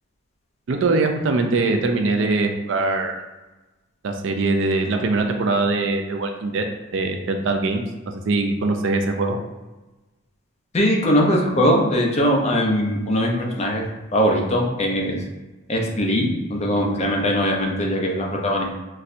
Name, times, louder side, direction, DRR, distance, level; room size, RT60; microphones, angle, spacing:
voice 1, 0.7-3.2 4.0-6.6 6.9-7.8 8.2-9.4, right 3 dB, 70° right, 4 dB, 0.4 m, -22 dB
voice 2, 10.7-13.8 14.1-15.2 15.7-18.7, equal, 35° left, 0 dB, 0.5 m, -21 dB
4.1 x 2.2 x 2.5 m, 1.1 s
head